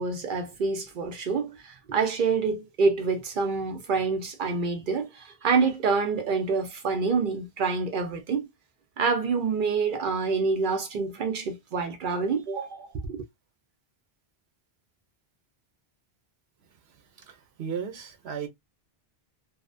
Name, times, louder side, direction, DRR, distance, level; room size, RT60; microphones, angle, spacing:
voice 1, 0.0-8.5 9.0-13.2, right 4 dB, 60° right, 0.6 m, -27 dB
voice 2, 17.2-18.5, right 7 dB, 85° right, 0.9 m, -35 dB
2.6 x 2.1 x 2.5 m
omnidirectional pair, 1.1 m